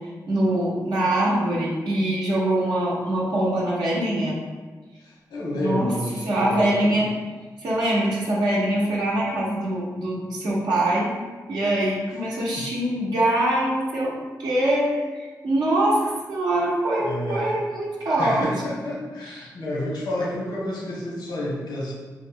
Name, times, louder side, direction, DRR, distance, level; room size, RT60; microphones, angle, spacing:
voice 1, 0.3-4.4 5.6-5.9 6.2-7.1 7.6-11.1 11.5-14.1 14.4-16.0 16.3-18.5 19.3-19.5, right 1 dB, 85° right, -6 dB, 0.7 m, -23 dB
voice 2, 5.0-7.0 12.6-12.7 17.0-17.5 18.2-21.9, left 1 dB, 85° left, -5 dB, 1.0 m, -30 dB
3.1 x 2.1 x 3.6 m, 1.4 s
cardioid pair, 60°, 7 cm